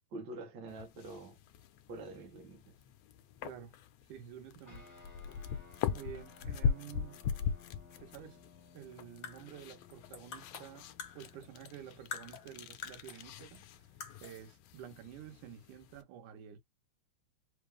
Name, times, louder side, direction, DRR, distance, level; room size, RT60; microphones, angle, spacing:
voice 1, 0.1-1.4 1.9-2.7, right 2 dB, 55° right, 1.2 m, -46 dB
sound 1, 0.7-16.0, left 7 dB, 80° left, 1.5 m, -41 dB
voice 2, 3.4-3.8 4.1-4.9 5.9-7.2 8.0-8.4 8.7-10.9 11.1-13.7 14.2-16.6, right 10 dB, 75° right, 2.5 m, -50 dB
sound 2, 4.6-15.3, left 4 dB, 20° left, 0.4 m, -61 dB
sound 3, 9.0-11.8 12.1-13.3 13.5-13.6 14.0-14.4, left 7 dB, 60° left, 1.0 m, -47 dB
5.3 x 2.0 x 3.3 m
omnidirectional pair, 3.7 m